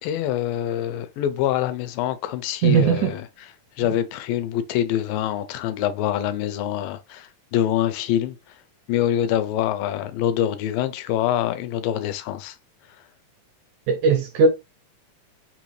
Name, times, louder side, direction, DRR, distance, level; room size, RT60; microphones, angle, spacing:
voice 1, 0.0-3.5 3.8-8.4 8.9-12.6, left 11 dB, 80° left, 2.3 m, -25 dB
voice 2, 2.6-3.1 13.9-14.5, right 5 dB, 80° right, 1.8 m, -18 dB
5.5 x 2.5 x 3.1 m
omnidirectional pair, 4.1 m